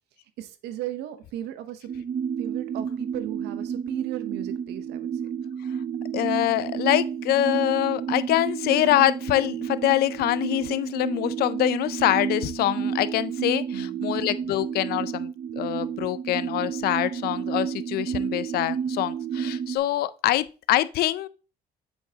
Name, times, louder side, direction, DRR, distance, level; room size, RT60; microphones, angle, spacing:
voice 1, 0.4-1.9 2.4-5.3 13.7-14.0, right 12 dB, 80° right, 0.8 m, -36 dB
sound 1, 1.9-19.8, right 7 dB, 40° right, 0.5 m, -31 dB
voice 2, 6.1-21.3, left 14 dB, 70° left, 0.4 m, -25 dB
7.8 x 4.6 x 2.7 m
cardioid pair, 110°, 17 cm